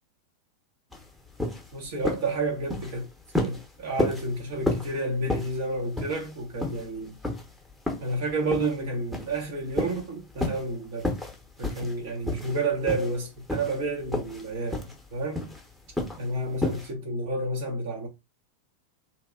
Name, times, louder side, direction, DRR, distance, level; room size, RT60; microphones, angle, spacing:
sound 1, 0.9-1.0 1.4-1.7 2.0-2.3 2.7-3.0 3.3-3.6 4.0-4.3 4.7-4.9 5.3-5.6 6.0-6.3 6.6-6.9 7.2-7.4 7.9-8.1 8.5-8.8 9.1-9.4 9.8-10.0 10.4-10.6 11.0-11.4 11.6-11.9 12.3-12.6 12.9-13.2 13.5-13.8 14.1-14.4 14.7-14.9 15.4-15.6 16.0-16.2 16.6-16.9, left 1 dB, ahead, 0.9 m, -30 dB
voice 1, 1.7-3.1 3.4-7.1 8.0-11.2 11.6-15.5 16.2-18.1, right 2 dB, 55° right, 0.9 m, -30 dB
2.8 x 2.8 x 2.3 m
figure-of-eight pair, 90°, 0 cm